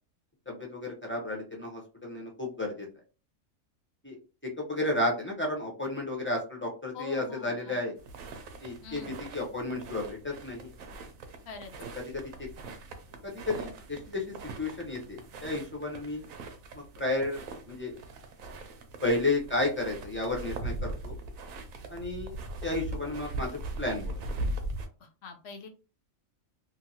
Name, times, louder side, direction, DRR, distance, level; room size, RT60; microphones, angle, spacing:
voice 1, 0.5-2.9 4.0-4.2 4.4-7.9 8.6-10.7 11.9-12.2 13.2-16.2 17.0-17.4 17.7-18.0 19.0-21.2 21.9-22.4 22.6-24.2, left 2 dB, 10° left, -1 dB, 0.6 m, -32 dB
voice 2, 6.9-7.8 8.8-9.1 11.5-11.7 25.0-25.7, left 5 dB, 65° left, 4 dB, 0.8 m, -43 dB
sound 1, 8.0-24.9, right 2 dB, 85° right, 1.1 m, -40 dB
2.8 x 2.6 x 2.7 m, 0.34 s
omnidirectional pair, 1.4 m